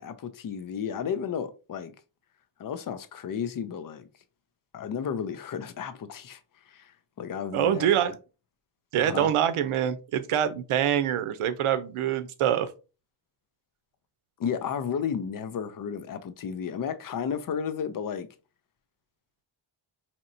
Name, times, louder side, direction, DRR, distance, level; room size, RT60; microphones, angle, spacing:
voice 1, 0.0-1.9 2.6-4.0 4.7-6.4 6.7-6.9 7.2-8.0 9.0-9.3 14.4-18.3, left 7 dB, 45° left, 0.5 m, -33 dB
voice 2, 7.5-8.1 8.9-12.7, right 10 dB, 80° right, 0.7 m, -25 dB
4.3 x 2.9 x 2.6 m
wide cardioid pair, 125°, 49 cm